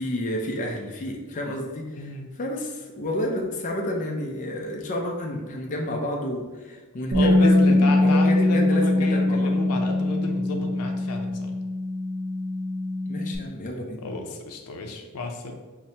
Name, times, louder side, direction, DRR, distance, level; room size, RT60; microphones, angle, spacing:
voice 1, 0.0-9.5 13.1-14.0, left 1 dB, 35° left, 0 dB, 0.4 m, -30 dB
voice 2, 1.9-2.3 7.1-11.6 14.0-15.5, left 2 dB, 90° left, 3 dB, 0.5 m, -32 dB
Bass guitar, 7.1-13.4, left 2 dB, 75° right, 0.9 m, -22 dB
5.7 x 2.0 x 2.7 m, 1.3 s
head